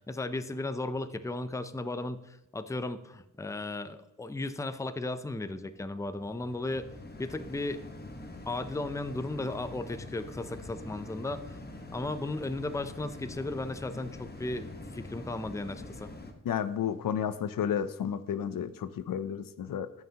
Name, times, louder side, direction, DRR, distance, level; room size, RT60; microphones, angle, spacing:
voice 1, 0.0-6.9 7.2-7.8 8.5-11.6 11.9-16.1, left 2 dB, 10° left, 11 dB, 0.5 m, -35 dB
sound 1, 5.2-16.3, left 2 dB, 30° left, 1.2 m, -45 dB
voice 2, 16.4-19.9, left 8 dB, 80° left, 14 dB, 0.6 m, -32 dB
15.0 x 5.6 x 2.9 m, 0.90 s
wide cardioid pair, 95°, 33 cm